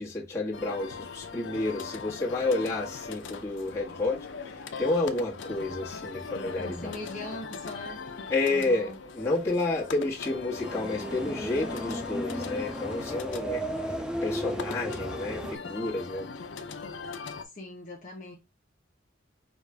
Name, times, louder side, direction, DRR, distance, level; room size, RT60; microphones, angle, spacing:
voice 1, 0.0-7.0 8.3-16.3, left 2 dB, 15° left, 1.4 m, -30 dB
sound 1, 0.5-17.4, left 5 dB, 65° left, 0.5 m, -40 dB
voice 2, 6.6-8.1 8.5-9.0 17.4-18.4, left 2 dB, 40° left, 0.8 m, -41 dB
sound 2, 10.6-15.6, right 1 dB, 5° right, 0.3 m, -35 dB
5.0 x 2.4 x 3.2 m
head